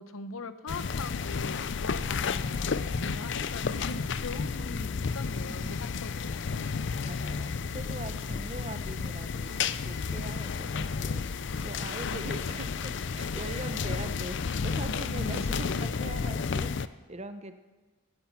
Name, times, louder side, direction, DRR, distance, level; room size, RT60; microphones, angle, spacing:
voice 1, 0.0-6.5 12.0-12.6 14.8-15.5, left 3 dB, 80° left, 12 dB, 0.9 m, -41 dB
sound 1, 0.7-16.9, left 5 dB, 55° left, 0.5 m, -32 dB
voice 2, 7.0-17.5, right 2 dB, 30° right, 10 dB, 0.9 m, -42 dB
16.5 x 10.5 x 7.3 m, 1.3 s
head